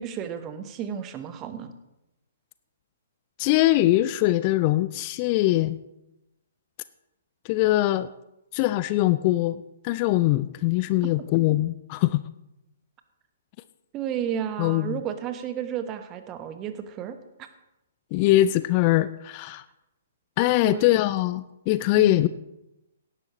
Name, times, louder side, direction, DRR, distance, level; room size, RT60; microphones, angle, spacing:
voice 1, 0.0-1.7 13.9-17.2 20.6-20.9 22.0-22.3, right 9 dB, 25° right, 9 dB, 1.1 m, -32 dB
voice 2, 3.4-5.8 7.4-8.1 8.5-12.2 14.6-15.0 18.1-19.6 20.4-22.3, left 16 dB, 35° left, 15 dB, 0.4 m, -22 dB
17.5 x 11.0 x 3.1 m, 0.90 s
figure-of-eight pair, 120°, 0 cm